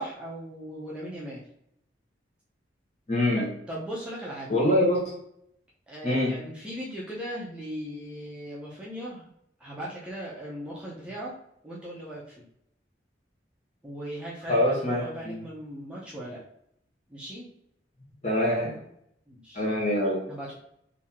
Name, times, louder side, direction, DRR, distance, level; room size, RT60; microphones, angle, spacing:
voice 1, 0.0-1.4 3.3-4.5 5.9-9.2 9.6-11.3 11.6-12.4 13.8-16.4 17.1-17.5 19.3-19.6 20.3-20.5, equal, 5° right, -6 dB, 0.6 m, -38 dB
voice 2, 3.1-3.5 4.5-5.1 6.0-6.3 14.5-15.4 18.2-18.8 19.5-20.2, left 1 dB, 35° left, -3 dB, 1.1 m, -24 dB
3.6 x 2.8 x 2.8 m, 0.74 s
head